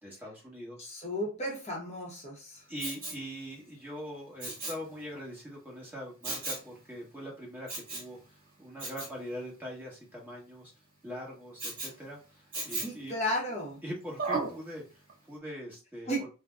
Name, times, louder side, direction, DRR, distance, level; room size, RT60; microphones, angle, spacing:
voice 1, 0.0-0.9 2.7-8.2 8.6-10.7 11.0-13.1 13.8-16.3, equal, 10° right, -4 dB, 1.1 m, -42 dB
voice 2, 0.8-2.6 12.8-13.8 16.1-16.3, equal, 30° left, -2 dB, 0.8 m, -34 dB
Respiratory sounds, 2.8-3.3 4.4-4.9 6.2-6.7 7.7-8.1 8.8-9.1 11.6-12.0 12.5-13.0 14.2-14.6 15.1-15.2, right 3 dB, 40° right, 1.3 m, -35 dB
3.8 x 2.1 x 2.3 m, 0.32 s
head